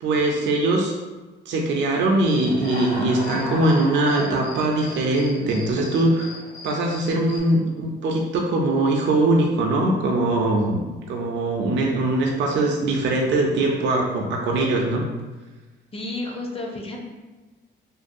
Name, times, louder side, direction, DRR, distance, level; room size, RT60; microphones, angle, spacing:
voice 1, 0.0-0.9 1.5-6.3 6.6-15.0, right 2 dB, 65° right, 0 dB, 0.4 m, -21 dB
Human voice / Cricket, 2.2-7.4, left 1 dB, 70° left, 0.7 m, -36 dB
voice 2, 15.9-17.0, left 2 dB, 30° left, 1 dB, 0.5 m, -31 dB
2.6 x 2.3 x 2.5 m, 1.2 s
cardioid pair, 90°, 20 cm